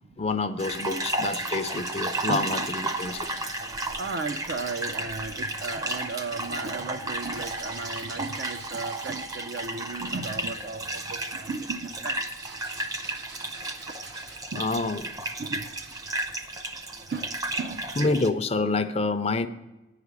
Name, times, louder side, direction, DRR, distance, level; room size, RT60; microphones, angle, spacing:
voice 1, 0.2-3.3 14.6-15.1 18.0-19.5, left 3 dB, 35° left, 10 dB, 0.5 m, -27 dB
sound 1, 0.6-18.3, right 2 dB, 20° right, 0.6 m, -33 dB
sound 2, 1.3-3.5 5.2-9.5 10.7-14.6 15.2-15.3 15.7-16.3, right 4 dB, 80° right, 1.2 m, -49 dB
voice 2, 2.3-2.7 4.0-12.2 14.5-14.9 15.4-15.7 17.1-17.3 17.6-17.8, right 4 dB, 65° right, 10 dB, 0.6 m, -35 dB
10.0 x 5.0 x 8.1 m, 1.1 s
head